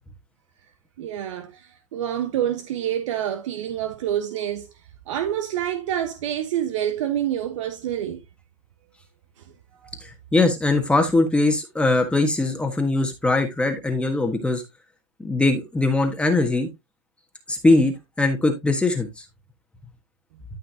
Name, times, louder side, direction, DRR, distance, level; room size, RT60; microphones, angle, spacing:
voice 1, 1.0-4.7 5.1-8.2 9.8-9.9, right 11 dB, 75° right, 1.1 m, -27 dB
voice 2, 10.0-14.6 15.2-16.7 17.5-19.2, left 2 dB, 5° left, 1.4 m, -21 dB
12.5 x 5.6 x 2.8 m
supercardioid pair, 130°, 16 cm